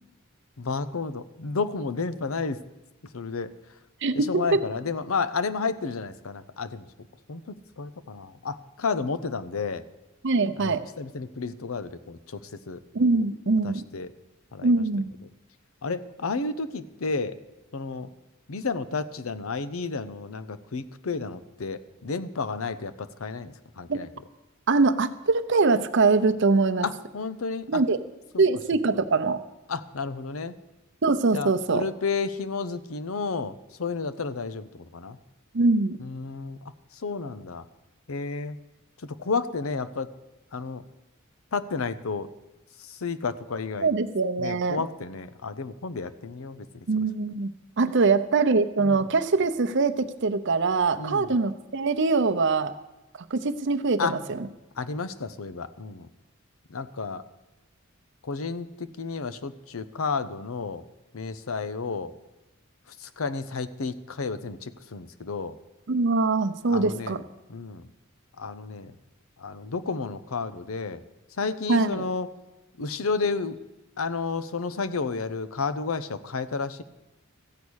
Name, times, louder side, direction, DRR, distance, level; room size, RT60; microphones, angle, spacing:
voice 1, 0.6-2.6 3.1-3.5 4.2-6.9 7.3-9.8 10.6-12.4 12.7-12.8 13.6-14.1 14.5-14.7 15.8-17.4 17.7-18.1 18.5-24.1 26.8-27.8 28.3-28.4 29.7-30.6 31.3-33.5 33.8-35.2 36.0-36.6 37.0-37.6 38.1-38.6 39.0-40.1 40.5-40.8 41.5-42.3 42.9-43.9 44.4-46.7 48.8-49.0 51.0-51.3 54.0-54.2 54.8-56.1 56.7-57.2 58.2-60.8 61.1-62.1 63.0-65.5 66.7-67.2 67.5-67.9 68.4-68.9 69.4-71.0 71.4-72.3 72.8-73.6 74.0-76.8, left 4 dB, 85° left, 13 dB, 0.7 m, -31 dB
voice 2, 4.0-4.6 10.2-10.8 12.9-13.8 14.6-15.1 23.9-24.0 24.7-26.9 27.7-28.0 28.4-29.4 31.0-31.9 35.5-36.0 43.8-44.8 46.9-47.5 47.8-52.7 53.3-54.5 65.9-67.2 71.7-72.0, right 3 dB, 60° right, 9 dB, 0.7 m, -23 dB
14.5 x 8.5 x 6.3 m, 1.0 s
head